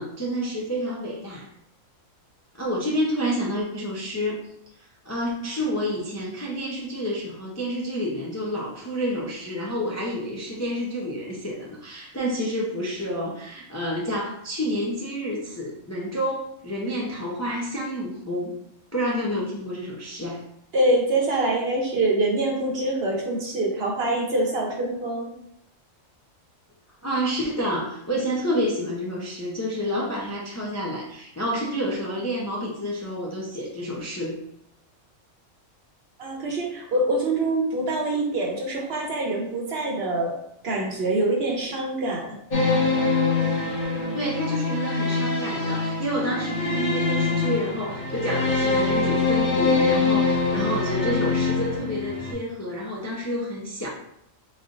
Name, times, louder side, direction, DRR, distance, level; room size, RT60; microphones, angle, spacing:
voice 1, 0.0-1.5 2.5-4.4 5.0-18.5 18.9-20.4 27.0-34.4 43.9-53.9, equal, 25° left, -4 dB, 0.3 m, -29 dB
voice 2, 20.7-25.3 36.2-40.4 40.6-42.3, right 2 dB, 55° right, -1 dB, 0.9 m, -25 dB
sound 1, 42.5-52.3, left 3 dB, 50° left, 0.8 m, -24 dB
3.9 x 3.2 x 2.5 m, 0.75 s
omnidirectional pair, 1.4 m